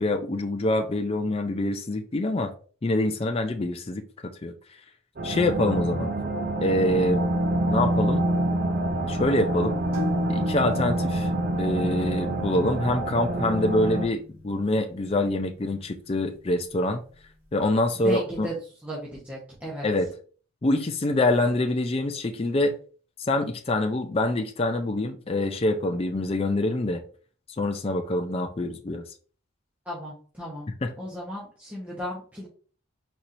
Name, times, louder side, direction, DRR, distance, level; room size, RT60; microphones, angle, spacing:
voice 1, 0.0-2.5 2.8-4.1 4.4-4.5 5.2-6.1 6.6-7.2 7.7-8.2 9.1-9.8 10.3-11.3 11.6-17.0 17.5-18.5 19.8-20.1 20.6-22.7 23.2-27.0 27.6-29.0 30.8-30.9, left 1 dB, 25° left, 0.4 m, -25 dB
sound 1, 5.2-14.1, right 1 dB, 40° right, 0.5 m, -26 dB
sound 2, 9.9-17.4, left 3 dB, 75° right, 2.4 m, -42 dB
voice 2, 18.0-18.5 18.8-19.9 29.8-30.7 31.0-32.5, equal, 5° right, 1.1 m, -35 dB
4.6 x 4.3 x 2.6 m
head